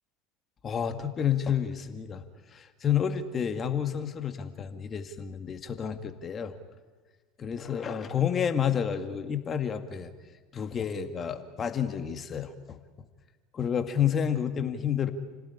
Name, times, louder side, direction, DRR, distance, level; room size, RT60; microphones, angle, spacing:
voice 1, 0.6-2.2 2.5-6.6 7.4-10.1 10.5-12.8 13.5-15.1, left 8 dB, 30° left, 8 dB, 2.1 m, -30 dB
30.0 x 17.5 x 9.9 m, 1.4 s
hypercardioid pair, 75°, 0 cm